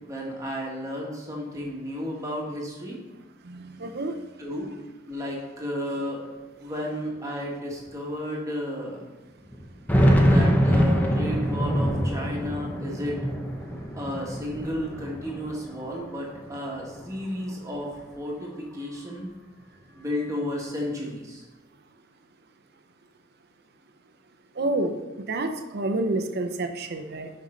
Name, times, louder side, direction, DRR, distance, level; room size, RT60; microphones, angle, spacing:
voice 1, 0.0-3.0 4.4-4.7 5.1-6.2 6.6-9.1 10.1-13.2 14.0-19.3 19.9-21.4, equal, 15° right, -3 dB, 1.6 m, -33 dB
voice 2, 3.4-4.2 24.6-24.9 25.3-27.3, right 2 dB, 55° right, 6 dB, 0.7 m, -28 dB
sound 1, 6.3-6.4 7.2-7.3 7.8-7.9 9.5-15.9 16.3-17.3, equal, 10° left, 0.8 m, -24 dB
6.5 x 5.6 x 5.1 m, 1.2 s
head